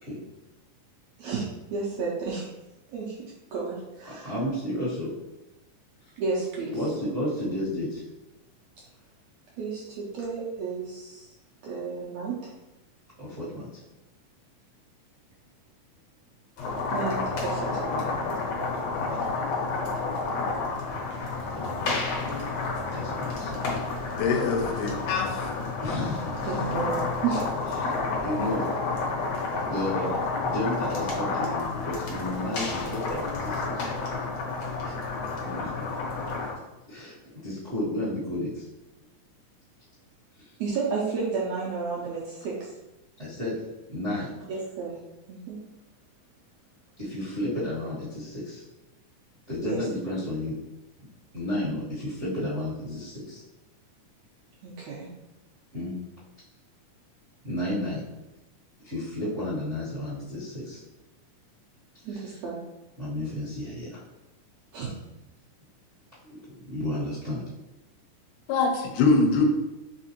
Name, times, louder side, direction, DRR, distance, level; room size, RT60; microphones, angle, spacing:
voice 1, 1.7-2.5 2.9-4.3 6.2-6.7 9.6-11.3 11.6-12.5 16.9-18.1 26.4-26.9 27.2-27.9 40.6-42.7 44.5-45.0 45.3-45.6 49.6-49.8 54.6-55.1 62.0-62.6 64.7-64.9, right 4 dB, 75° right, -4 dB, 1.6 m, -32 dB
voice 2, 4.2-5.1 6.0-6.1 6.7-8.1 13.2-13.8 19.0-19.2 22.9-23.5 25.8-26.6 27.8-28.0 28.2-28.6 29.7-33.9 34.8-34.9 35.4-35.8 36.9-38.7 40.4-40.5 43.2-43.5 43.9-44.3 47.0-48.6 49.5-50.6 51.3-53.4 55.7-55.9 57.4-58.0 58.8-60.8 62.1-62.4 63.0-64.0 66.5-67.4, left 1 dB, 45° right, -10 dB, 0.8 m, -32 dB
sound 1, 16.6-36.5, left 3 dB, 65° left, 1.8 m, -30 dB
voice 3, 24.2-25.5 68.5-69.4, left 4 dB, 80° left, 3 dB, 2.1 m, -23 dB
4.9 x 3.6 x 2.9 m, 0.99 s
omnidirectional pair, 3.8 m